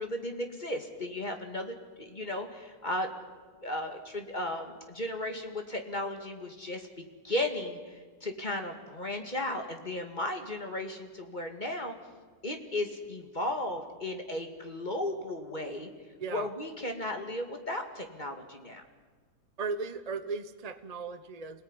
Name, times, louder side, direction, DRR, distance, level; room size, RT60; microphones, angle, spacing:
voice 1, 0.0-3.1 3.6-11.9 12.4-15.9 16.3-18.8, left 1 dB, 25° left, 5 dB, 2.3 m, -35 dB
voice 2, 16.2-16.5 19.6-21.6, right 4 dB, 30° right, 10 dB, 0.8 m, -36 dB
26.5 x 18.0 x 9.9 m, 1.5 s
omnidirectional pair, 1.9 m